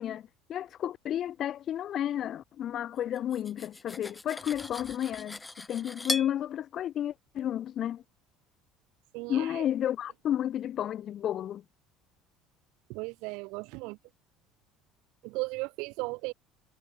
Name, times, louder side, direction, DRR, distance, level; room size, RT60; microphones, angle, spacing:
voice 1, 0.0-8.0 9.3-11.6, left 11 dB, 45° left, 1.3 m, -32 dB
Cutlery silverware, 3.1-6.3, left 2 dB, 10° left, 0.7 m, -38 dB
voice 2, 9.1-9.6 12.9-14.0 15.2-16.3, right 27 dB, 75° right, 1.4 m, -36 dB
cardioid pair, 125°, 0 cm